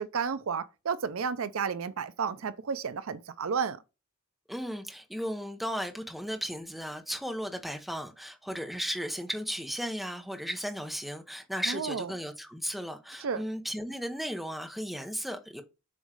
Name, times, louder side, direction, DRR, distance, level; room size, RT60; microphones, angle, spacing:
voice 1, 0.0-3.8 11.7-12.1 13.2-13.4, right 6 dB, 75° right, 0.5 m, -32 dB
voice 2, 4.5-15.6, equal, ahead, 0.8 m, -35 dB
7.4 x 3.1 x 4.8 m
head